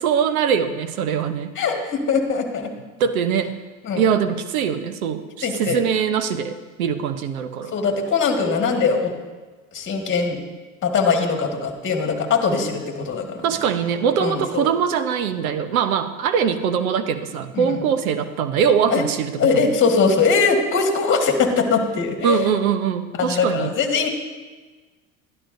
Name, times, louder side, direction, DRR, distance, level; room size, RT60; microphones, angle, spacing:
voice 1, 0.0-1.5 3.0-3.5 4.0-7.8 13.4-19.6 22.2-23.7, right 7 dB, 85° right, 11 dB, 0.8 m, -22 dB
voice 2, 1.6-2.7 3.8-4.0 5.4-5.8 7.7-9.1 9.7-10.4 10.8-13.4 14.2-14.7 17.5-17.8 18.9-19.0 19.4-22.5 23.2-24.1, left 5 dB, 30° left, 3 dB, 1.7 m, -21 dB
12.0 x 11.5 x 2.6 m, 1.3 s
hypercardioid pair, 95°, 41 cm